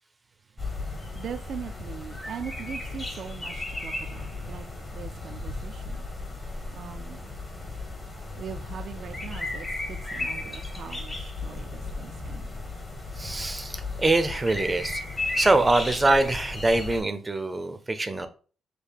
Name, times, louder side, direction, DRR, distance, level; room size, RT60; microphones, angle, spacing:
sound 1, 0.6-17.0, left 2 dB, 25° left, 1.3 m, -35 dB
voice 1, 0.7-4.7 4.9-6.1 6.7-7.2 8.4-12.6, right 8 dB, 60° right, 0.4 m, -41 dB
voice 2, 13.2-15.0 15.4-18.3, right 2 dB, 20° right, 0.6 m, -24 dB
6.4 x 2.1 x 3.5 m
cardioid pair, 90°, 0 cm